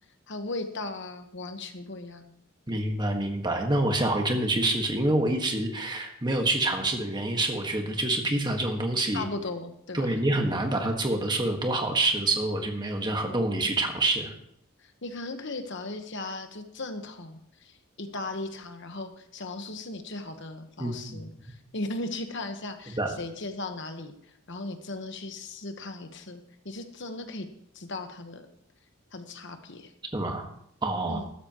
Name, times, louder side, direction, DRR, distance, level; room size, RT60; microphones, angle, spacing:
voice 1, 0.3-2.3 9.1-10.2 14.8-24.1 24.5-26.4 26.6-27.5 27.7-28.5 29.1-29.9 31.1-31.3, left 2 dB, 55° left, 7 dB, 1.2 m, -37 dB
voice 2, 2.7-9.2 9.9-14.3 20.8-21.5 22.9-23.1 30.1-30.5 30.8-31.2, right 2 dB, 20° right, 3 dB, 1.6 m, -27 dB
14.5 x 13.0 x 3.0 m, 0.70 s
head